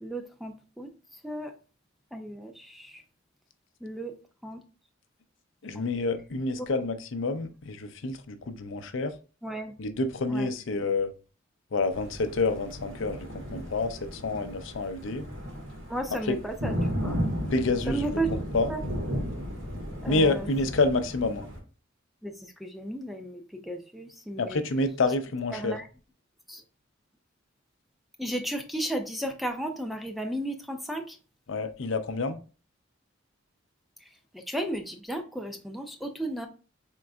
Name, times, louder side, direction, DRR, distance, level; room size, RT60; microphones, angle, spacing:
voice 1, 0.0-1.5 2.1-3.0 3.8-4.2 4.4-4.6 5.7-5.8 6.8-6.9 9.4-9.7 10.3-10.5 15.9-17.2 17.9-18.4 18.7-18.8 20.0-20.5 22.2-24.6 25.5-25.9 26.5-26.6 28.2-31.2 34.0-36.5, right 1 dB, ahead, 0.5 m, -34 dB
voice 2, 5.6-9.1 9.8-11.1 11.7-15.2 16.3-16.4 17.5-18.1 18.5-18.7 20.1-21.5 24.4-25.7 31.5-32.4, left 3 dB, 70° left, 0.5 m, -28 dB
Thunder, 11.9-21.6, equal, 80° right, 1.7 m, -34 dB
5.1 x 3.7 x 2.3 m
head